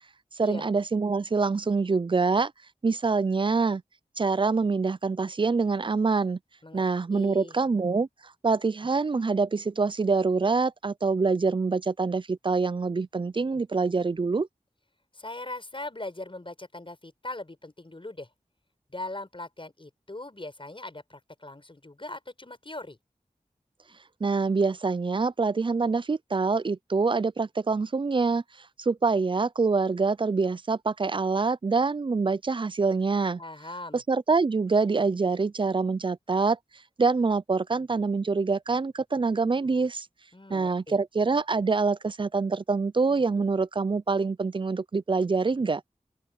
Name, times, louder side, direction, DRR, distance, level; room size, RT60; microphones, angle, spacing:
voice 1, 0.4-2.5 2.8-3.8 4.2-6.4 6.7-8.1 8.4-14.5 24.2-28.4 28.8-33.4 33.9-36.6 37.0-40.1 40.5-45.8, right 4 dB, 35° right, 0.4 m, -25 dB
voice 2, 7.1-7.6 15.1-18.3 18.9-23.0 33.4-34.0 40.3-41.0, left 2 dB, 40° left, 6.7 m, -40 dB
open air
wide cardioid pair, 65°, 14 cm